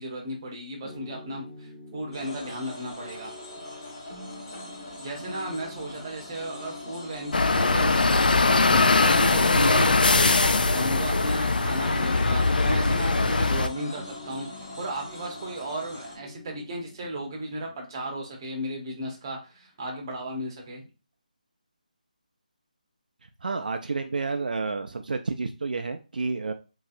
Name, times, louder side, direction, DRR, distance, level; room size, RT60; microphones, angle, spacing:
voice 1, 0.0-3.3 5.0-8.2 8.7-20.9, right 1 dB, 25° right, 1 dB, 0.8 m, -35 dB
sound 1, 0.8-20.4, left 3 dB, 20° left, 1.2 m, -46 dB
sound 2, 2.1-16.2, left 1 dB, 35° left, 1.1 m, -43 dB
sound 3, 7.3-13.7, left 3 dB, 85° left, 0.4 m, -21 dB
voice 2, 23.4-26.5, right 4 dB, 70° right, 6 dB, 0.4 m, -30 dB
3.1 x 2.7 x 2.4 m, 0.31 s
figure-of-eight pair, 165°, 5 cm